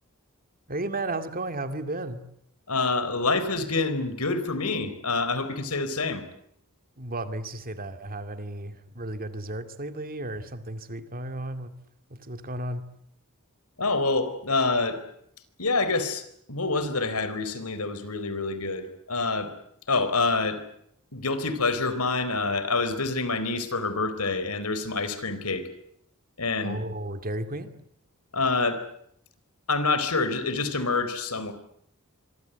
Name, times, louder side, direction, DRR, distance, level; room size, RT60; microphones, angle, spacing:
voice 1, 0.7-2.2 7.0-11.7 12.1-12.9 26.6-27.7, right 2 dB, 40° right, 9 dB, 2.3 m, -34 dB
voice 2, 2.7-6.2 13.8-15.0 15.6-19.5 19.9-20.6 21.1-25.7 26.4-26.8 28.3-28.8 29.7-31.5, left 3 dB, 85° left, 12 dB, 4.1 m, -27 dB
25.5 x 24.0 x 8.1 m, 0.71 s
head